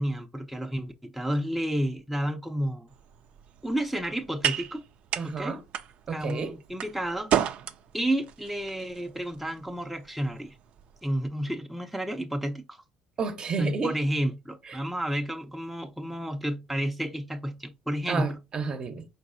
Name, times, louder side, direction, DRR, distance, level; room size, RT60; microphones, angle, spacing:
voice 1, 0.0-2.9 3.6-4.8 5.2-5.6 6.1-7.3 7.9-10.6 11.0-12.8 13.6-18.4, equal, ahead, 0.6 m, -31 dB
sound 1, 2.9-11.3, right 10 dB, 60° right, 0.5 m, -35 dB
voice 2, 5.2-5.6 6.1-6.5 13.2-14.0 14.7-14.8 18.1-19.0, right 5 dB, 40° right, 0.8 m, -31 dB
4.7 x 4.0 x 2.6 m
supercardioid pair, 90°, 2 cm